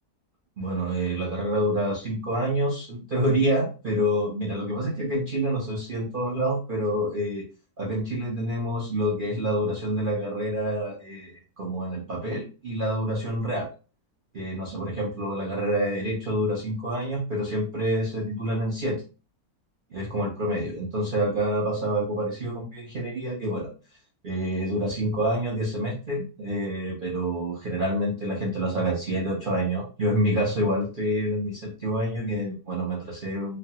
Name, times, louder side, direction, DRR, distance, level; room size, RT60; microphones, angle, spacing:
voice 1, 0.6-7.4 7.8-11.3 11.6-13.7 14.3-19.0 19.9-23.7 24.2-33.6, equal, 80° right, -4 dB, 0.4 m, -27 dB
3.1 x 2.2 x 2.7 m, 0.33 s
omnidirectional pair, 1.9 m